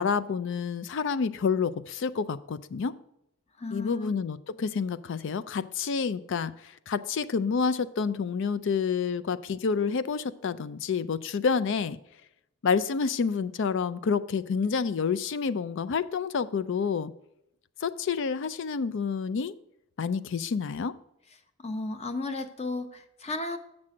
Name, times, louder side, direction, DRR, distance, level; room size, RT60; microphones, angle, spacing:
voice 1, 0.0-2.9 3.7-12.0 12.6-17.1 17.8-19.5 20.0-20.9, left 5 dB, 60° left, 15 dB, 0.4 m, -28 dB
voice 2, 3.6-4.2 21.6-23.6, left 2 dB, 30° left, 8 dB, 0.8 m, -34 dB
7.4 x 6.1 x 5.0 m, 0.81 s
head